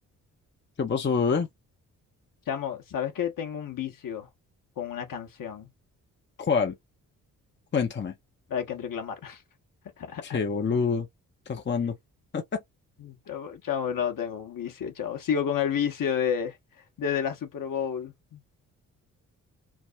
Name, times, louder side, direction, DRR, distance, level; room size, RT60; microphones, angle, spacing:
voice 1, 0.8-1.5 6.4-6.7 7.7-8.1 10.2-11.1 11.5-12.0 12.3-12.6, left 5 dB, 25° left, 0.8 m, -26 dB
voice 2, 2.5-4.3 4.8-5.7 8.5-9.4 10.0-10.4 13.0-18.4, left 8 dB, 50° left, 1.1 m, -31 dB
3.4 x 2.1 x 2.5 m
hypercardioid pair, 40°, 41 cm